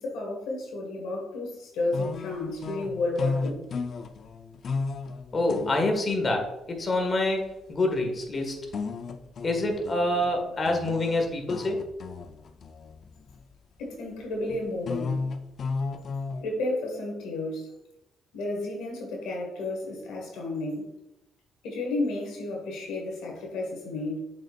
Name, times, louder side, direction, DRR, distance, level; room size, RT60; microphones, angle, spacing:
voice 1, 0.0-3.6 13.8-15.2 16.4-17.7 18.3-20.9 21.6-24.2, left 2 dB, 90° left, -1 dB, 1.7 m, -32 dB
sound 1, 1.9-6.3 6.9-7.0 8.7-13.4 14.5-16.4, left 4 dB, 55° left, 0.6 m, -34 dB
voice 2, 5.3-8.7 9.4-11.8, left 2 dB, 35° left, 3 dB, 1.6 m, -26 dB
7.3 x 5.5 x 2.5 m, 0.93 s
cardioid pair, 90°, 0 cm